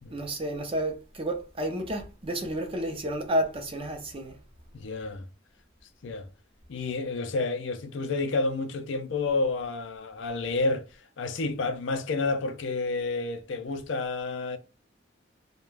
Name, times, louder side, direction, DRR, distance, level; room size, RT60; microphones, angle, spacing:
voice 1, 0.1-4.4, right 1 dB, 30° right, 0.5 m, -31 dB
voice 2, 4.7-5.2 6.0-6.3 6.7-14.6, left 3 dB, 65° left, 0.4 m, -30 dB
2.4 x 2.2 x 3.2 m
head